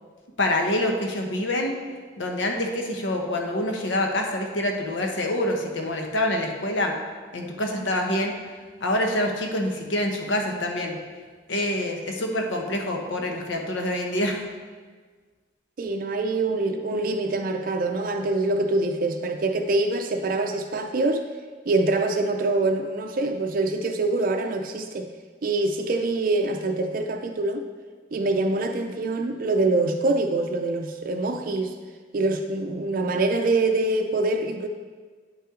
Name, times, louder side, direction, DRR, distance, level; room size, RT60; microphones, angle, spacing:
voice 1, 0.4-1.7 2.2-6.9 7.3-8.4 8.8-11.0 11.5-14.4, left 1 dB, 90° left, 2 dB, 1.1 m, -26 dB
voice 2, 15.8-21.3 21.7-25.1 25.4-27.6 28.1-31.7 32.1-34.7, right 2 dB, 50° right, 5 dB, 0.4 m, -25 dB
9.7 x 5.7 x 3.7 m, 1.5 s
head